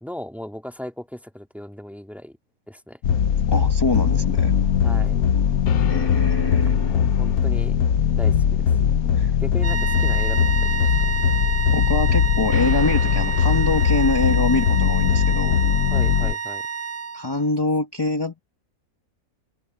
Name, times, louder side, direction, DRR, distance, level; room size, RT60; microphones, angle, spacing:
voice 1, 0.0-2.4 2.7-3.0 4.8-5.2 6.9-7.8 8.2-8.7 9.4-11.1 15.9-16.7, equal, ahead, 1.9 m, -37 dB
sound 1, 3.0-16.3, left 8 dB, 90° left, 1.4 m, -20 dB
voice 2, 3.5-4.5 5.8-7.0 9.2-9.3 11.7-15.6 17.1-18.4, left 2 dB, 20° left, 1.1 m, -25 dB
sound 2, 9.6-17.5, right 6 dB, 35° right, 0.8 m, -29 dB
omnidirectional pair, 1.5 m